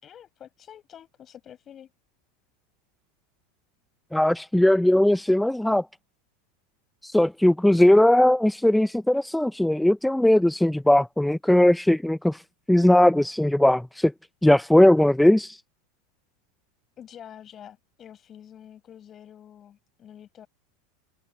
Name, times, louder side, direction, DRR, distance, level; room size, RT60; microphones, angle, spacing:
voice 1, 0.0-1.9 17.0-20.5, left 9 dB, 35° left, 6.1 m, -47 dB
voice 2, 4.1-5.8 7.0-12.4 12.7-14.1 14.4-15.6, left 1 dB, 5° left, 0.6 m, -19 dB
hypercardioid pair, 95°, 0 cm